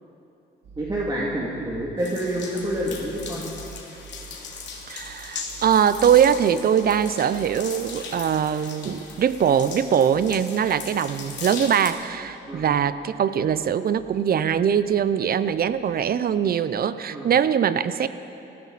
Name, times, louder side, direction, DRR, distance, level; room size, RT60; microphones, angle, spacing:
sound 1, 0.6-16.7, right 5 dB, 70° right, 2.0 m, -49 dB
voice 1, 0.8-3.5 12.5-12.6 17.1-17.3, right 1 dB, 20° right, -5 dB, 2.4 m, -28 dB
sound 2, 2.0-11.9, left 5 dB, 65° left, 2.6 m, -38 dB
voice 2, 4.9-18.1, right 8 dB, 50° right, 14 dB, 0.7 m, -22 dB
20.0 x 15.5 x 4.2 m, 2.9 s
cardioid pair, 90°, 20 cm